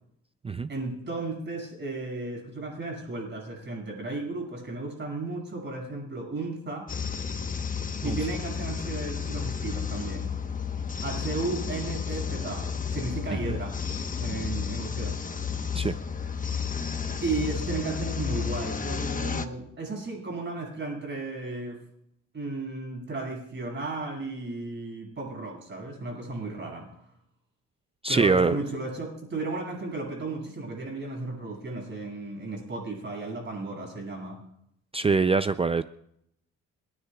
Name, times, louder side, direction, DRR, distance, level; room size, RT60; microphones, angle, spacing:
voice 1, 0.7-6.9 8.0-10.3 11.0-13.8 14.1-15.4 17.2-21.8 22.3-27.0 28.1-34.4, right 3 dB, 40° right, 0 dB, 6.6 m, -34 dB
sound 1, 6.9-19.5, left 6 dB, 25° left, 1.1 m, -32 dB
voice 2, 28.0-28.6 34.9-35.8, right 4 dB, 20° right, 12 dB, 0.4 m, -24 dB
29.0 x 9.9 x 2.4 m, 0.76 s
cardioid pair, 90°, 30 cm